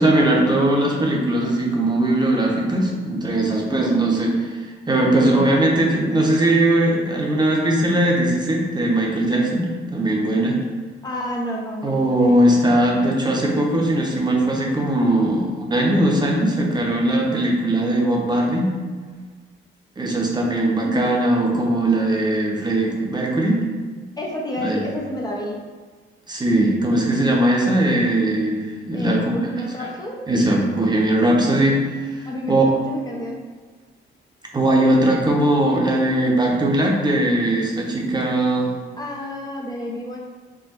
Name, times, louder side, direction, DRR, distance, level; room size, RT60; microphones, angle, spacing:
voice 1, 0.0-4.6 4.9-10.6 11.8-18.7 20.0-23.6 24.6-24.8 26.3-29.3 30.3-31.8 32.1-32.2 32.5-32.6 34.5-38.7, right 1 dB, 20° right, -1 dB, 0.9 m, -19 dB
voice 2, 3.7-4.0 11.0-12.4 20.8-21.0 24.2-25.5 28.9-30.2 32.3-33.5 39.0-40.2, left 1 dB, 20° left, -2 dB, 0.6 m, -30 dB
4.6 x 2.2 x 4.4 m, 1.5 s
cardioid pair, 90°, 20 cm